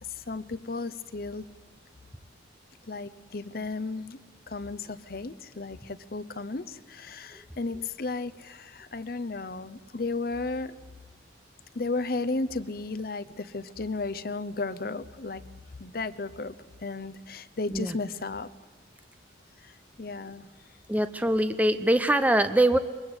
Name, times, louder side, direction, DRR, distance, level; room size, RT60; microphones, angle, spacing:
voice 1, 0.0-1.4 2.9-4.2 4.5-10.7 11.7-15.4 15.8-18.5 19.6-20.5, left 3 dB, 50° left, 14 dB, 0.7 m, -34 dB
voice 2, 20.9-22.8, right 1 dB, 10° right, 9 dB, 0.7 m, -23 dB
22.5 x 21.0 x 8.1 m, 1.4 s
head